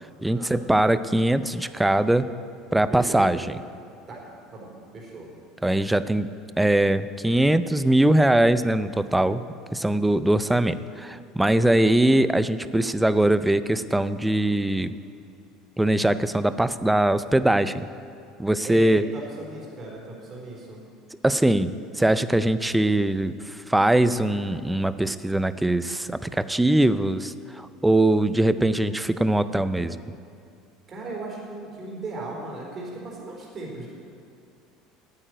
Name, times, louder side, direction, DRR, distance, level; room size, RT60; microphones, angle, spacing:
voice 1, 0.2-2.3 2.7-3.6 5.6-6.3 6.6-9.4 9.7-14.9 15.8-17.9 18.4-19.0 21.2-30.0, right 1 dB, 5° right, 13 dB, 0.4 m, -22 dB
voice 2, 2.8-3.5 4.1-4.3 4.5-5.3 18.6-20.8 30.9-33.9, right 2 dB, 30° right, -3 dB, 3.8 m, -37 dB
8.9 x 8.8 x 9.2 m, 2.6 s
supercardioid pair, 130°, 0 cm